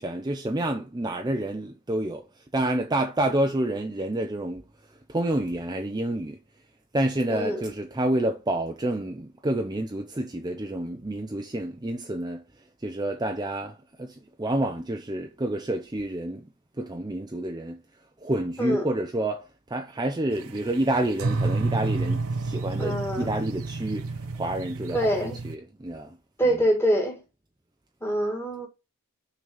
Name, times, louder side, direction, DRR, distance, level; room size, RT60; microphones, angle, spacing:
voice 1, 0.0-2.3 2.5-4.6 5.1-6.4 6.9-12.4 12.8-16.5 16.8-17.8 18.2-26.2 26.4-26.6, right 1 dB, 20° right, 0.6 m, -29 dB
voice 2, 7.3-7.7 18.6-18.9 22.8-23.3 24.9-25.4 26.4-27.2 28.0-28.7, equal, 10° left, 2.1 m, -25 dB
sound 1, 20.3-25.5, right 3 dB, 70° right, 0.9 m, -30 dB
6.2 x 4.1 x 5.9 m
head